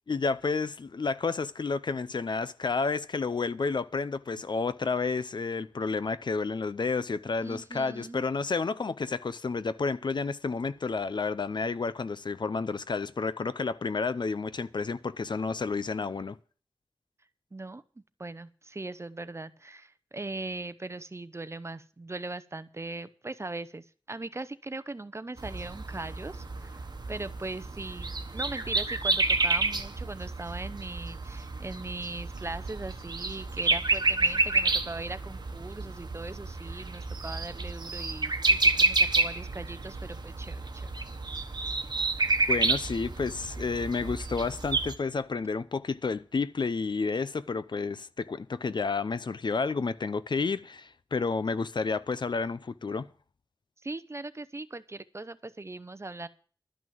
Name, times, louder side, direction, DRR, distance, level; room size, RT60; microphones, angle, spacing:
voice 1, 0.1-16.4 42.5-53.1, left 4 dB, 60° left, 0.6 m, -30 dB
voice 2, 7.4-8.2 17.5-17.8 18.2-40.9 53.8-56.3, right 2 dB, 35° right, 0.7 m, -40 dB
sound 1, 25.4-44.9, right 3 dB, 55° right, 1.2 m, -29 dB
12.5 x 6.1 x 9.3 m
wide cardioid pair, 70°, 9 cm